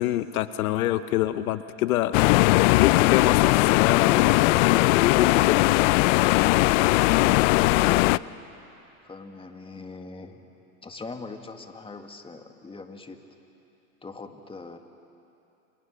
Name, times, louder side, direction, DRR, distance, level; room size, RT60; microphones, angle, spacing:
voice 1, 0.0-2.2 2.7-6.2, left 14 dB, 75° left, 12 dB, 1.0 m, -26 dB
sound 1, 2.1-8.2, left 20 dB, 60° left, 0.6 m, -19 dB
voice 2, 9.0-10.4 10.8-13.2 14.0-14.8, left 3 dB, 10° left, 5 dB, 2.0 m, -41 dB
29.0 x 27.0 x 6.7 m, 2.9 s
hypercardioid pair, 110°, 43 cm